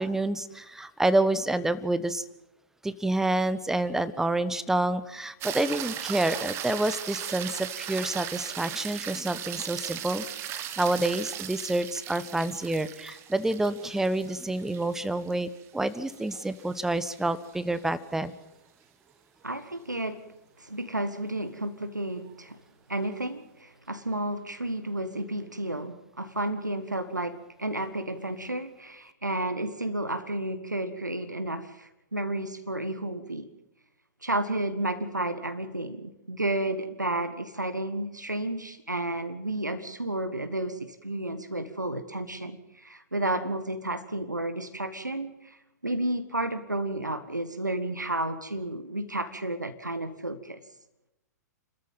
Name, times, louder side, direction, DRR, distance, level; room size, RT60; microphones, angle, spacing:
voice 1, 0.0-2.2 2.8-10.2 10.5-18.3, right 2 dB, 5° right, 15 dB, 1.1 m, -28 dB
sound 1, 5.4-17.8 22.3-22.4, right 11 dB, 30° right, 1.5 m, -38 dB
voice 2, 19.4-20.2 20.6-22.6 22.9-33.5 34.2-50.6, right 1 dB, 85° right, 9 dB, 1.5 m, -32 dB
29.5 x 13.5 x 7.5 m, 0.93 s
figure-of-eight pair, 105°, 10 cm